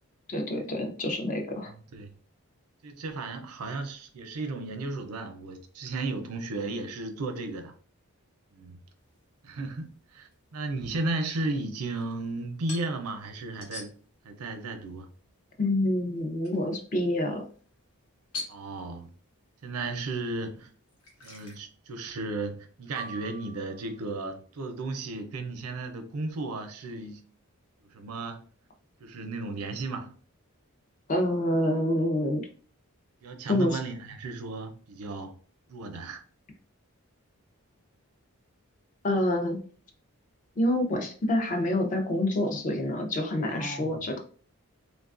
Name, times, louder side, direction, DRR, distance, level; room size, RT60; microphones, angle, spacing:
voice 1, 0.3-1.7 15.6-17.4 31.1-32.5 33.5-33.8 39.0-39.6 40.6-44.2, left 1 dB, 35° left, 0.4 m, -27 dB
voice 2, 1.6-2.2 2.8-7.7 8.5-8.8 9.4-9.9 10.1-13.9 14.2-15.1 18.5-19.1 19.6-20.7 21.2-27.2 27.9-28.4 29.0-30.1 33.2-35.4 35.7-36.2 43.5-44.0, right 2 dB, 80° right, 0.5 m, -34 dB
sound 1, 8.9-21.5, left 3 dB, 80° left, 1.0 m, -49 dB
sound 2, 23.0-24.2, right 4 dB, 25° right, 0.4 m, -44 dB
3.2 x 2.3 x 2.4 m
head